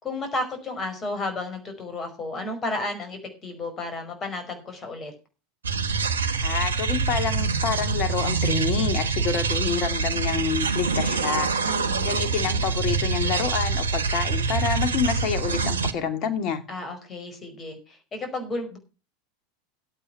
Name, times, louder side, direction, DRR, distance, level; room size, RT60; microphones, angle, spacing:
voice 1, 0.0-5.1 11.6-12.2 16.7-18.8, left 2 dB, 30° left, 5.2 m, -32 dB
sound 1, 5.6-15.9, right 4 dB, 90° right, 1.2 m, -25 dB
voice 2, 6.4-11.5 12.0-16.6, left 7 dB, 50° left, 2.7 m, -28 dB
13.0 x 8.5 x 5.9 m
hypercardioid pair, 90°, 0 cm